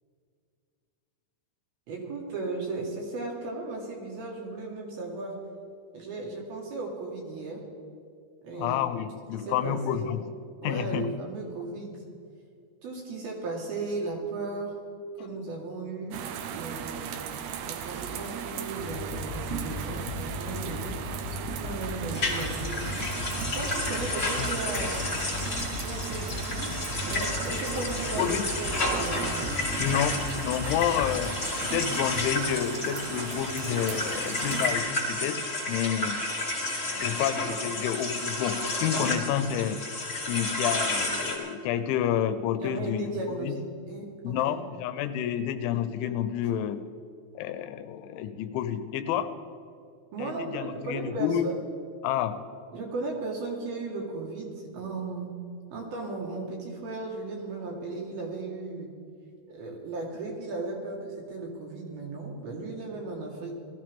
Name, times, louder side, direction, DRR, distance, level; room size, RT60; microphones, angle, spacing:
voice 1, 1.9-5.4 5.9-7.6 8.4-8.8 9.3-10.1 10.6-12.0 12.8-14.8 15.2-16.2 16.5-17.1 17.7-21.0 21.3-23.0 23.5-25.0 25.8-26.7 27.0-29.6 42.6-44.5 50.1-51.6 52.7-55.3 55.7-58.9 59.5-63.5, right 3 dB, 60° right, -1 dB, 3.1 m, -36 dB
voice 2, 8.5-10.2 10.6-11.1 15.2-15.3 28.2-28.5 29.8-31.3 31.6-35.4 35.7-36.2 37.0-39.8 40.3-43.6 44.2-46.8 47.4-49.3 50.2-51.5 52.0-52.3, left 10 dB, 85° left, 11 dB, 3.1 m, -29 dB
sound 1, 16.1-34.8, right 8 dB, 80° right, 2.7 m, -37 dB
sound 2, 18.8-31.4, left 2 dB, 70° left, 2.9 m, -37 dB
sound 3, 22.1-41.4, left 2 dB, 25° left, 2.0 m, -31 dB
19.5 x 13.5 x 3.6 m, 2.4 s
omnidirectional pair, 5.4 m